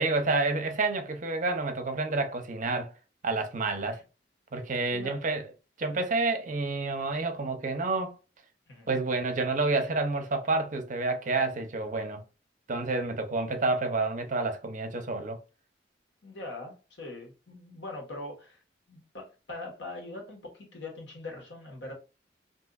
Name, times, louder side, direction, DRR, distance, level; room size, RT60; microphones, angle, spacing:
voice 1, 0.0-2.9 3.2-4.0 4.5-5.5 5.8-8.1 8.9-12.2 12.7-15.4, right 3 dB, 45° right, 0.6 m, -29 dB
voice 2, 16.2-18.6 18.9-21.9, left 2 dB, 75° left, 1.2 m, -42 dB
3.7 x 2.7 x 2.3 m
head